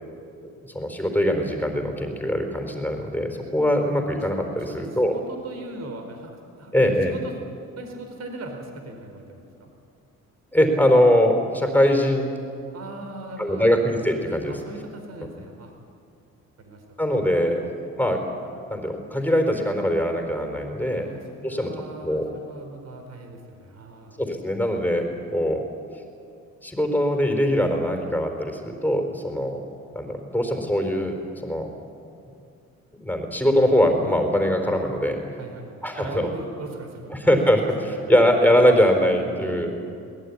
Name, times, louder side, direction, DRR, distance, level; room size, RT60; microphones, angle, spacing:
voice 1, 0.6-5.1 6.7-7.1 10.5-12.3 13.4-14.5 17.0-17.7 18.0-18.2 18.7-21.1 21.4-21.7 22.0-22.3 24.2-25.6 26.6-29.6 29.9-31.2 31.4-31.7 33.0-35.2 35.8-36.3 37.1-39.7, equal, 5° left, 3 dB, 4.3 m, -22 dB
voice 2, 4.6-6.8 7.1-7.3 7.8-9.7 12.7-13.7 14.5-15.7 16.6-17.2 17.4-17.6 21.0-24.2 35.4-37.4 37.8-38.3 39.3-40.0, right 2 dB, 60° right, 4 dB, 4.3 m, -39 dB
22.0 x 18.5 x 9.9 m, 2.4 s
cardioid pair, 90°, 30 cm